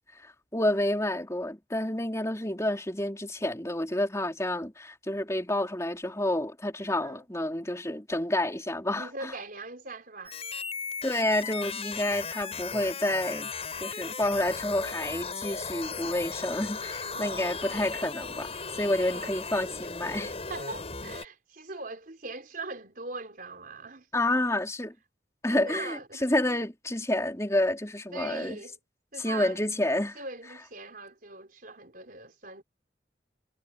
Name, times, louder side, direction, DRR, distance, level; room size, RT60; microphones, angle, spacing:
voice 1, 0.2-9.1 11.0-13.5 13.8-18.5 18.7-20.3 24.1-24.9 25.4-28.6 29.2-30.2, left 1 dB, 15° left, 3.9 m, -29 dB
voice 2, 8.9-10.4 17.1-17.9 19.1-19.4 20.5-24.1 25.5-26.3 28.1-28.8 29.1-29.6 30.1-32.6, right 3 dB, 50° right, 4.5 m, -41 dB
sound 1, 10.2-21.2, left 5 dB, 35° left, 7.3 m, -37 dB
head